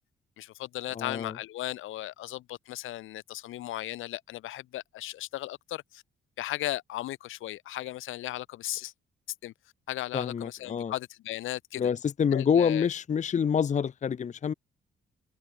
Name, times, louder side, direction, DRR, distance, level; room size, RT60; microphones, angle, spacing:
voice 1, 0.4-6.0 6.4-8.9 9.4-9.5 9.9-11.9 12.3-12.9, left 15 dB, 85° left, 3.0 m, -36 dB
voice 2, 0.9-1.4 10.1-10.9 11.8-14.5, left 7 dB, 35° left, 0.7 m, -27 dB
open air
cardioid pair, 90°, 20 cm